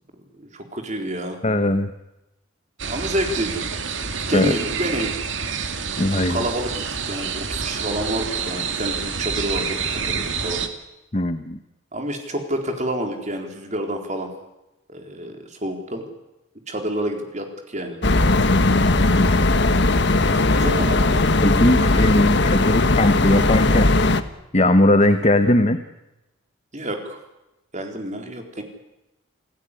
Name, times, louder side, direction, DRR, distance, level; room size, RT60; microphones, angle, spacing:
voice 1, 0.4-1.4 2.9-3.6 4.0-5.1 6.1-6.7 7.1-10.6 11.9-14.3 14.9-16.1 16.7-18.0 18.4-18.7 20.2-21.4 21.8-22.0 26.7-27.2 27.7-28.6, right 1 dB, 35° right, 4 dB, 4.2 m, -29 dB
voice 2, 1.4-1.9 4.3-4.5 6.0-6.4 11.1-11.6 21.4-23.9 24.5-25.8, left 1 dB, 35° left, 9 dB, 1.1 m, -19 dB
sound 1, 2.8-10.7, right 6 dB, 65° right, 2.3 m, -28 dB
sound 2, 18.0-24.2, left 2 dB, 60° left, 1.4 m, -18 dB
28.5 x 16.0 x 10.0 m, 0.95 s
head